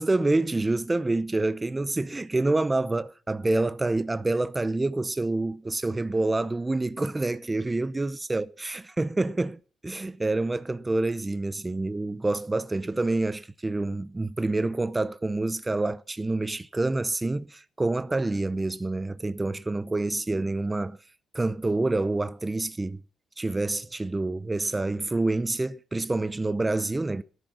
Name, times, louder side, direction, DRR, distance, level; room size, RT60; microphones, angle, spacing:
voice 1, 0.0-21.0 21.3-23.0 23.4-27.2, right 2 dB, 20° right, 0.6 m, -27 dB
13.5 x 11.0 x 5.9 m
cardioid pair, 90°, 0 cm